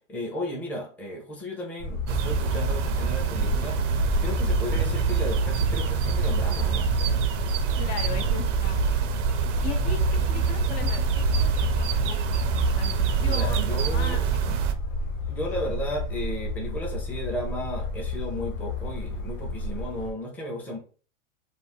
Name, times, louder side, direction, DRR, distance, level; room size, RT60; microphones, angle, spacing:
voice 1, 0.1-3.8 4.2-6.9 10.3-10.5 13.2-14.2 15.3-20.8, left 1 dB, 5° left, -2 dB, 0.5 m, -34 dB
sound 1, 1.8-20.1, left 2 dB, 90° left, 1.0 m, -31 dB
sound 2, 2.1-14.7, right 7 dB, 70° right, 0.5 m, -26 dB
voice 2, 7.8-9.0 9.6-10.0 10.3-11.0 11.4-12.5 12.7-14.6, left 7 dB, 55° left, 6 dB, 0.6 m, -38 dB
2.5 x 2.0 x 3.4 m, 0.39 s
hypercardioid pair, 120°, 38 cm